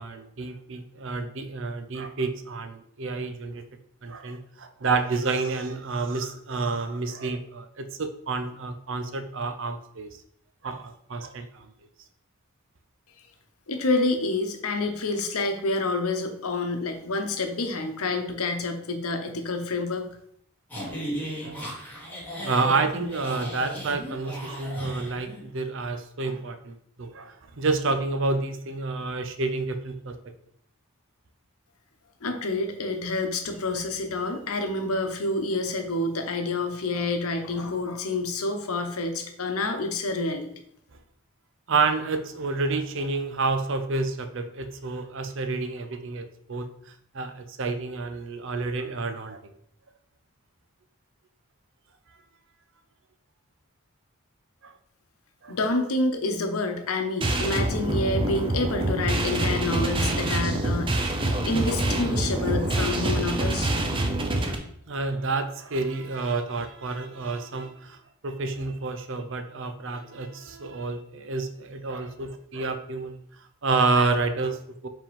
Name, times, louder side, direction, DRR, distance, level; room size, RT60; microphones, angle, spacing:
voice 1, 0.0-3.6 4.0-10.2 10.6-11.7 20.8-21.0 21.4-21.6 22.4-30.2 41.7-49.5 54.6-54.8 55.4-55.6 64.9-74.9, right 3 dB, 60° right, 8 dB, 0.6 m, -29 dB
voice 2, 13.7-20.1 32.2-40.5 55.5-63.8, left 2 dB, 85° left, 6 dB, 0.9 m, -28 dB
sound 1, 20.7-25.4, equal, 10° left, 2.0 m, -36 dB
sound 2, 57.2-64.5, right 1 dB, 25° right, 0.7 m, -26 dB
5.1 x 3.7 x 5.1 m, 0.68 s
head